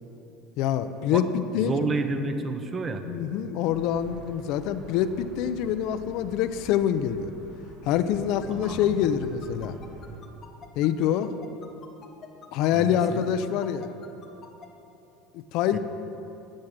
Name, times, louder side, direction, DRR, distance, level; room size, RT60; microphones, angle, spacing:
voice 1, 0.6-1.9 3.0-7.3 7.9-9.8 10.8-11.3 12.5-13.9 15.3-15.8, left 9 dB, 60° left, 10 dB, 0.6 m, -25 dB
voice 2, 1.6-3.1 8.5-9.3 12.7-13.2 15.7-15.8, right 3 dB, 25° right, 8 dB, 0.9 m, -30 dB
sound 1, 3.7-10.2, right 2 dB, 55° right, 3.4 m, -46 dB
sound 2, 8.4-14.7, left 7 dB, 30° left, 1.1 m, -46 dB
14.5 x 6.4 x 8.9 m, 3.0 s
cardioid pair, 150°, 0 cm